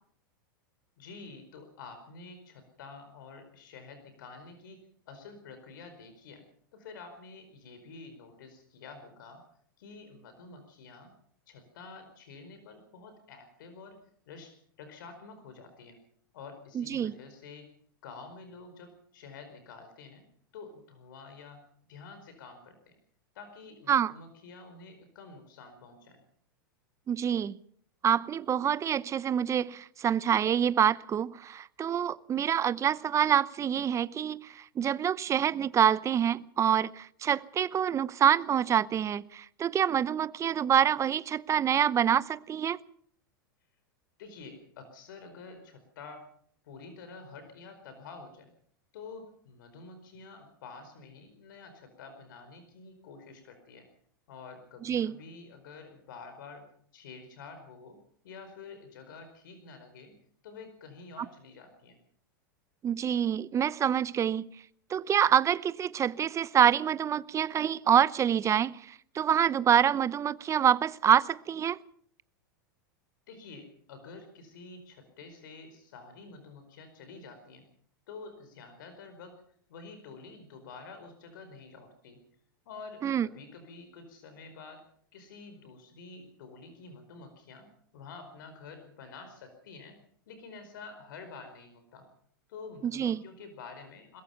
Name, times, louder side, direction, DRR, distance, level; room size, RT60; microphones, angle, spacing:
voice 1, 1.0-4.8 5.1-6.4 6.7-9.4 9.8-11.1 11.5-14.0 14.3-16.0 16.3-17.7 18.0-20.2 20.5-23.0 23.3-26.2 44.2-46.3 46.6-48.5 48.9-53.9 54.3-56.7 56.9-58.0 58.2-60.1 60.4-62.0 73.3-77.7 78.1-79.4 79.7-82.2 82.6-84.8 85.1-90.0 90.3-92.1 92.5-94.2, left 4 dB, 70° left, 4.7 m, -48 dB
voice 2, 16.7-17.1 23.9-24.1 27.1-27.6 28.0-42.8 54.8-55.1 62.8-64.4 64.9-71.8 83.0-83.3 92.8-93.2, right 9 dB, 25° right, 0.8 m, -26 dB
21.5 x 21.5 x 5.7 m
hypercardioid pair, 95°, 11 cm